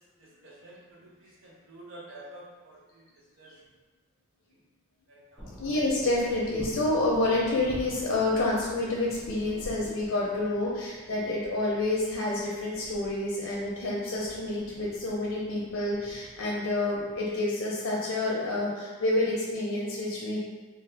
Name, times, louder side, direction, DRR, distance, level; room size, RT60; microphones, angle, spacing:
voice 1, 0.2-3.0 3.4-3.5 5.1-5.5, right 1 dB, 65° right, -4 dB, 0.7 m, -49 dB
sound 1, 5.4-17.4, equal, 5° right, 0.3 m, -47 dB
voice 2, 5.6-20.4, left 2 dB, 80° left, -5 dB, 0.6 m, -28 dB
2.8 x 2.3 x 3.3 m, 1.3 s
head